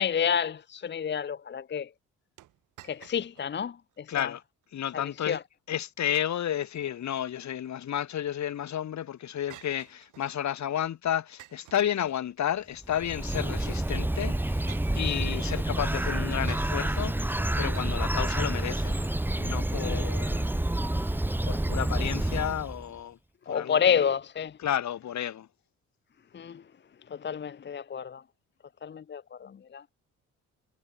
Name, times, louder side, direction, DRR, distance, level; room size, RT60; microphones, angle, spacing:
voice 1, 0.0-1.9 2.8-4.3 4.9-5.4 19.8-20.1 23.5-24.6 26.3-26.7 27.0-28.2 28.8-29.9, left 7 dB, 35° left, 0.8 m, -30 dB
sound 1, 2.4-3.6 3.9-4.0 4.6-5.0 6.9-7.8 9.5-10.5 11.4-12.6 13.7-13.8 14.7-15.5 16.5-17.1 17.7-17.8, right 15 dB, 85° right, 6.4 m, -53 dB
voice 2, 4.1-4.4 4.7-5.4 5.7-19.0 19.4-20.5 21.5-23.2 23.5-23.8 24.6-25.5, left 10 dB, 65° left, 5.1 m, -32 dB
Bird, 12.8-22.8, right 1 dB, 5° right, 1.4 m, -28 dB
cardioid pair, 90°, 30 cm